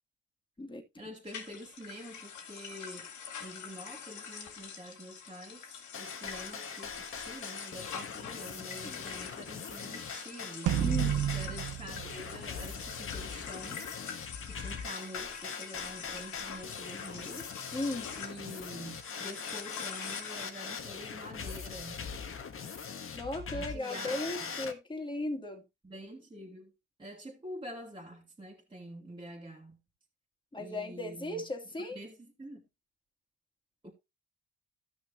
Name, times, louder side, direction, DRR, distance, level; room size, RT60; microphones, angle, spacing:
voice 1, 1.0-3.1 3.4-5.6 6.0-10.8 11.3-13.8 14.4-17.7 18.2-22.1 23.5-24.6 25.8-26.7 27.0-29.8 30.5-31.5 31.8-32.6 33.8-33.9, equal, 15° right, 2.6 m, -47 dB
sound 1, 1.3-20.5, left 7 dB, 75° left, 2.3 m, -45 dB
sound 2, 5.9-24.7, left 6 dB, 45° left, 1.5 m, -42 dB
sound 3, 10.7-13.2, right 9 dB, 85° right, 1.3 m, -32 dB
voice 2, 10.8-11.2 17.7-18.1 23.1-25.6 30.5-32.0, left 1 dB, 15° left, 2.5 m, -36 dB
14.0 x 6.2 x 2.8 m
cardioid pair, 90°, 30 cm